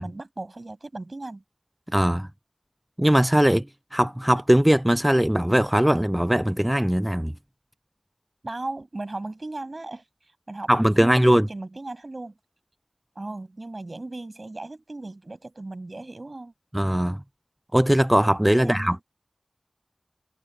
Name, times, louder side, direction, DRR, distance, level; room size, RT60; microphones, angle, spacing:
voice 1, 0.0-1.4 8.4-10.7 11.0-12.3 13.1-16.5 18.5-19.0, right 2 dB, 70° right, 6.9 m, -36 dB
voice 2, 1.9-2.3 3.0-3.7 3.9-7.3 10.7-11.5 16.7-17.2 17.7-19.0, equal, 15° right, 0.4 m, -20 dB
wide cardioid pair, 40°, 0 cm